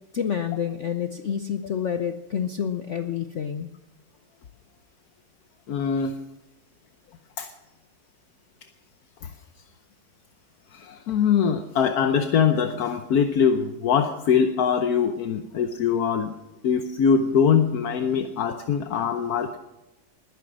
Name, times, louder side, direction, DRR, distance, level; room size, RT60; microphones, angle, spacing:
voice 1, 0.1-3.7, left 8 dB, 80° left, 8 dB, 0.6 m, -28 dB
voice 2, 5.7-6.2 7.4-7.5 9.2-9.3 10.7-16.3 16.6-19.6, left 7 dB, 60° left, 7 dB, 1.1 m, -22 dB
20.5 x 9.3 x 6.2 m, 0.98 s
omnidirectional pair, 2.2 m